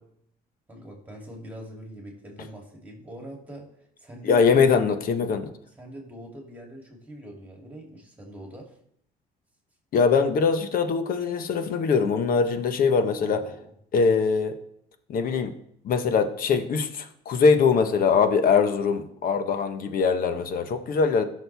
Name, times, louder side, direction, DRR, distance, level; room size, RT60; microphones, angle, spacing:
voice 1, 0.7-3.7 4.0-4.9 5.6-8.7 12.9-13.7, equal, 10° right, -1 dB, 3.0 m, -43 dB
voice 2, 4.2-5.5 9.9-13.4 13.9-14.5 15.1-15.5 15.8-21.2, left 5 dB, 60° left, 8 dB, 1.2 m, -22 dB
15.5 x 6.5 x 3.5 m, 0.71 s
cardioid pair, 110°, 17 cm